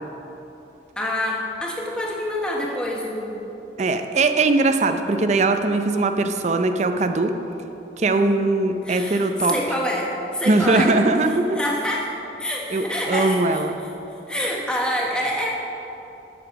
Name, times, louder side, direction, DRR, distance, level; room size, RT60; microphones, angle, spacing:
voice 1, 1.0-3.5 8.1-8.3 8.8-11.0 11.5-12.1 12.4-13.6 14.3-15.5, left 1 dB, 5° left, -3 dB, 1.2 m, -26 dB
voice 2, 3.8-7.3 8.0-9.5 10.5-11.6 12.7-13.8, right 3 dB, 40° right, 7 dB, 0.5 m, -20 dB
8.8 x 6.9 x 5.8 m, 3.0 s
head